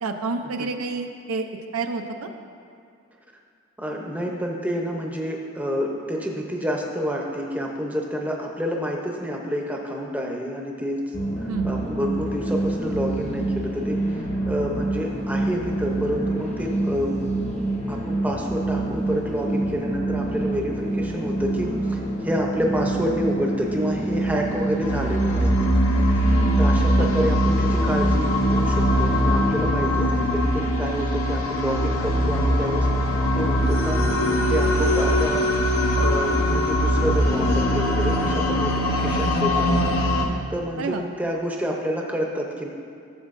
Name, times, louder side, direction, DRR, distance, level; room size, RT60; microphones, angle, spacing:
voice 1, 0.0-1.5 1.7-2.3 11.5-11.7 26.2-26.7 27.0-27.3 40.8-41.0, right 4 dB, 90° right, 5 dB, 0.5 m, -29 dB
voice 2, 3.8-17.2 17.9-26.3 26.6-32.9 33.3-34.0 34.5-35.5 35.9-39.7 40.5-42.7, equal, 5° right, 0 dB, 0.6 m, -28 dB
sound 1, 11.1-29.6, right 2 dB, 30° left, 0.8 m, -26 dB
sound 2, 24.8-40.3, equal, 75° left, 0.8 m, -21 dB
12.0 x 7.2 x 2.5 m, 2.4 s
head